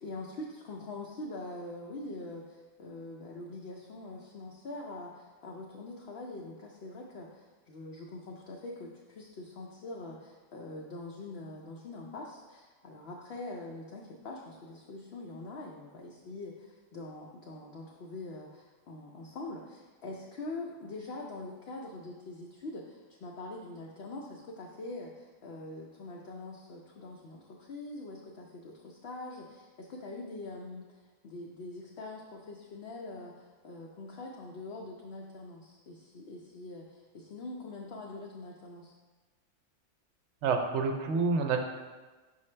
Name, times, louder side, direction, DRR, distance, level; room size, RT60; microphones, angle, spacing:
voice 1, 0.0-38.9, left 2 dB, 60° left, -1 dB, 0.7 m, -44 dB
voice 2, 40.4-41.6, right 4 dB, 60° right, 5 dB, 0.9 m, -28 dB
5.6 x 5.5 x 3.2 m, 1.3 s
omnidirectional pair, 1.4 m